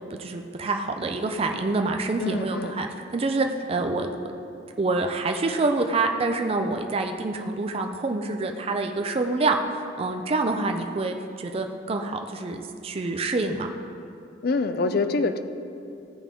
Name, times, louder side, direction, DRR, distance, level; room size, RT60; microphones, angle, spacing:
voice 1, 0.2-2.9 3.1-4.1 4.8-9.6 10.0-13.7, right 3 dB, 30° right, 4 dB, 0.4 m, -26 dB
voice 2, 2.2-2.8 14.4-15.4, left 3 dB, 55° left, 10 dB, 0.4 m, -25 dB
15.0 x 5.2 x 3.7 m, 2.7 s
head